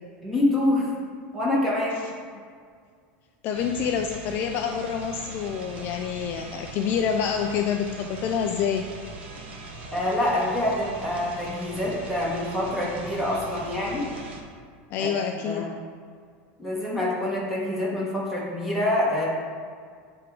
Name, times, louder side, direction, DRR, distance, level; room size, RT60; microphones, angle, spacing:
voice 1, 0.2-0.9 1.3-2.0 9.9-14.1 15.0-15.7 16.6-19.2, left 1 dB, ahead, -7 dB, 1.4 m, -26 dB
voice 2, 3.4-8.9 14.9-15.7, left 7 dB, 35° left, 3 dB, 0.3 m, -27 dB
sound 1, 3.5-14.4, right 2 dB, 85° right, 1.0 m, -40 dB
7.5 x 3.5 x 4.7 m, 2.1 s
supercardioid pair, 160°, 6 cm